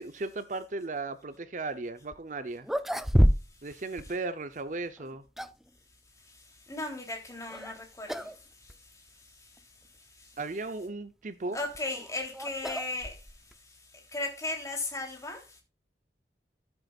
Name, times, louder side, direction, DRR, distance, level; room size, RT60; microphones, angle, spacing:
voice 1, 0.0-2.7 3.6-5.2 10.4-11.6, right 3 dB, 45° right, 0.7 m, -36 dB
sound 1, 2.1-2.2 2.6-3.7 4.0-4.1 5.0-5.7 7.5-7.7 8.1-8.4 8.7-8.8 9.6-9.7 11.4-13.6, equal, ahead, 0.4 m, -28 dB
voice 2, 6.2-10.4 11.5-15.6, left 2 dB, 20° left, 3.2 m, -38 dB
13.0 x 8.0 x 2.4 m
head